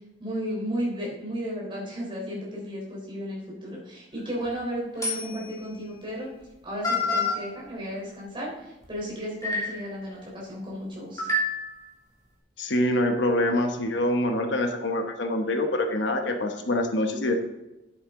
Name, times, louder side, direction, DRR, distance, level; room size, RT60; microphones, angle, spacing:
voice 1, 0.2-6.3 6.6-11.3, equal, 25° right, -4 dB, 3.7 m, -34 dB
sound 1, 4.2-4.5 5.0-5.6 6.4-6.5 6.8-7.4 8.8-8.9 9.4-9.9 11.2-11.9, left 2 dB, 20° left, 3.0 m, -28 dB
voice 2, 12.6-17.3, left 1 dB, 65° left, 5 dB, 1.0 m, -25 dB
10.5 x 8.8 x 3.7 m, 0.97 s
head